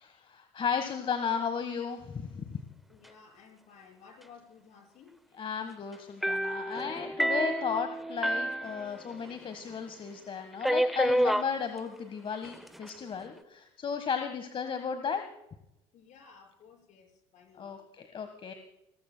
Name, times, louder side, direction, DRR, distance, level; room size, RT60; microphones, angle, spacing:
voice 1, 0.0-2.6 5.4-15.2 17.6-18.5, left 6 dB, 40° left, 8 dB, 1.5 m, -34 dB
voice 2, 2.9-5.1 15.9-17.8, left 6 dB, 55° left, 2 dB, 6.2 m, -55 dB
sound 1, 6.2-9.4 9.7-9.8 10.6-11.5 12.4-12.9, right 1 dB, ahead, 0.7 m, -29 dB
28.5 x 13.5 x 2.3 m, 0.85 s
hypercardioid pair, 70°, 15 cm